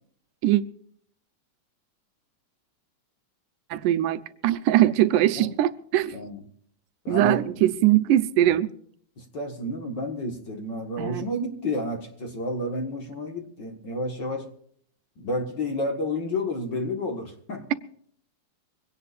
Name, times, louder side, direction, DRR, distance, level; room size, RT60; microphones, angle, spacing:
voice 1, 3.7-6.2 7.1-8.7 11.0-11.3, right 13 dB, 90° right, 2.3 m, -21 dB
voice 2, 7.0-7.4 9.2-14.5 15.2-17.7, left 1 dB, 40° left, 1.9 m, -30 dB
23.5 x 17.5 x 2.5 m
omnidirectional pair, 3.6 m